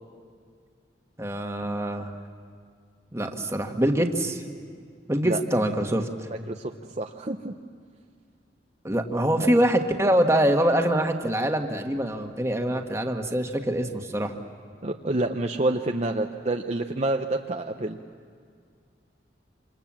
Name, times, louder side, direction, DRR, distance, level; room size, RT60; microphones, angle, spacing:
voice 1, 1.2-2.1 3.1-4.4 5.1-6.1 8.8-14.3, right 1 dB, 15° right, 4 dB, 1.5 m, -24 dB
voice 2, 6.3-6.7 7.0-7.5 9.4-9.5 14.8-18.0, right 2 dB, 35° right, 4 dB, 0.7 m, -28 dB
27.5 x 27.0 x 7.5 m, 2.2 s
head